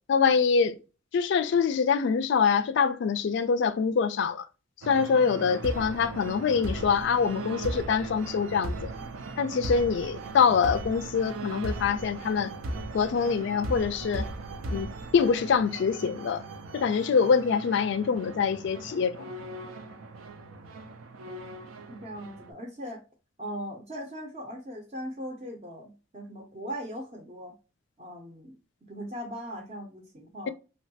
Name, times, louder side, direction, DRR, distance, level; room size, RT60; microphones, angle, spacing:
voice 1, 0.1-0.8 1.1-4.5 4.9-8.9 9.4-12.5 12.9-14.3 14.7-16.4 16.7-19.3, left 6 dB, 60° left, 0.3 m, -25 dB
sound 1, 4.8-22.5, right 2 dB, 85° right, 0.5 m, -38 dB
voice 2, 21.9-23.0 23.4-27.6 28.0-30.5, equal, 30° right, 0.5 m, -39 dB
3.1 x 2.2 x 2.7 m
head